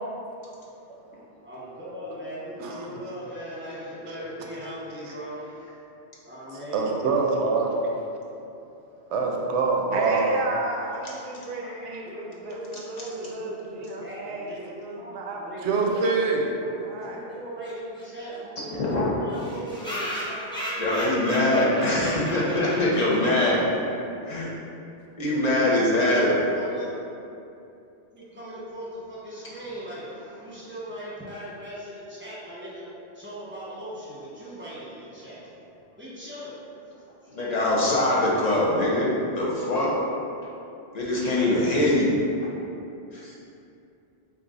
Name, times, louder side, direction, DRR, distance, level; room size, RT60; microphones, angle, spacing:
voice 1, 1.1-5.7 6.2-6.9 12.0-16.3 16.9-20.6 21.0-22.2 24.4-24.5 25.4-26.9 28.1-32.9 33.1-35.6 35.9-36.6 37.2-37.4 41.4-41.5, equal, 10° right, -9 dB, 1.0 m, -39 dB
voice 2, 6.7-7.7 9.1-10.3 15.6-16.5, right 4 dB, 85° right, 0 dB, 0.9 m, -24 dB
voice 3, 9.9-17.2, right 2 dB, 55° right, -1 dB, 0.6 m, -34 dB
voice 4, 12.7-13.1 18.7-19.1 20.8-23.6 24.2-24.5 25.2-26.3 37.3-39.9 40.9-42.2 42.4-42.5 43.1-43.3, left 1 dB, 45° left, -6 dB, 0.7 m, -23 dB
sound 1, 17.6-17.7 18.0-18.1 18.3-18.4 18.6-18.7 19.3-23.5, equal, 5° left, 0.5 m, -35 dB
3.9 x 2.4 x 3.9 m, 2.7 s
omnidirectional pair, 1.1 m